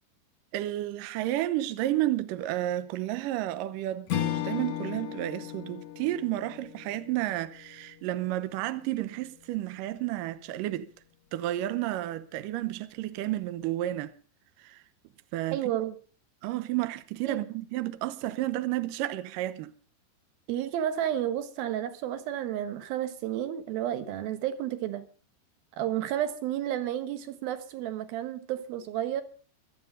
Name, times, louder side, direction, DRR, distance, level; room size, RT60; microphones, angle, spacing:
voice 1, 0.5-10.9 11.3-14.1 14.6-14.8 15.3-15.6 16.4-19.7, right 14 dB, 90° right, 1.9 m, -31 dB
Strum, 4.1-8.7, left 13 dB, 65° left, 1.8 m, -36 dB
voice 2, 15.5-15.9 17.3-17.4 20.5-25.1 25.8-29.2, right 11 dB, 65° right, 2.8 m, -31 dB
24.0 x 8.3 x 5.4 m
omnidirectional pair, 5.1 m